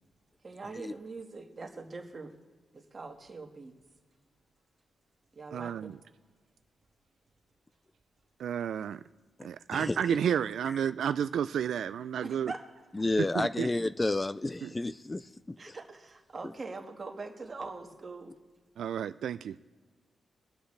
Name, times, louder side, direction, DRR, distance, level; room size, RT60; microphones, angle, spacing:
voice 1, 0.4-2.3 2.7-3.7 5.3-5.9 12.2-12.6 15.6-18.3, right 3 dB, 35° right, 3 dB, 1.7 m, -42 dB
voice 2, 5.5-6.0 8.4-9.0 9.4-12.5 13.2-13.7 14.6-14.7 18.8-19.6, right 9 dB, 75° right, 13 dB, 0.3 m, -31 dB
voice 3, 9.7-10.0 12.9-15.8, left 2 dB, 15° left, 15 dB, 0.3 m, -31 dB
23.5 x 7.9 x 3.3 m, 1.4 s
cardioid pair, 105°, 0 cm